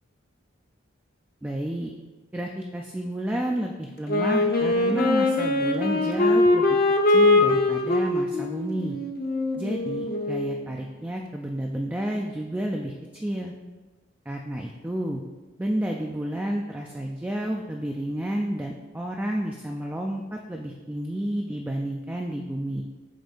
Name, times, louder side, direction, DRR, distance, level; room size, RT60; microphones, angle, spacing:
voice 1, 1.4-1.9 2.3-6.8 7.1-9.0 9.6-12.9 13.2-13.5 14.3-15.2 15.6-22.8, right 1 dB, 10° right, 0 dB, 0.3 m, -30 dB
Wind instrument woodwind instrument, 4.1-10.7, left 2 dB, 45° left, 0.6 m, -22 dB
7.5 x 2.6 x 5.1 m, 1.3 s
head